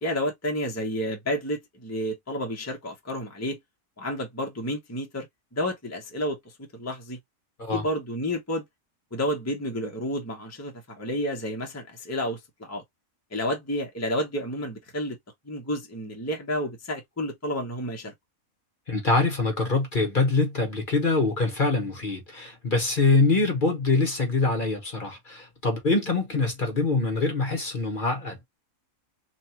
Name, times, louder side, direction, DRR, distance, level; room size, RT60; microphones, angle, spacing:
voice 1, 0.0-3.6 4.0-7.2 7.7-8.6 9.1-12.8 13.3-15.2 15.4-18.1, equal, 15° left, 0.8 m, -30 dB
voice 2, 18.9-28.4, left 3 dB, 40° left, 1.1 m, -24 dB
3.3 x 2.4 x 4.3 m
omnidirectional pair, 1.5 m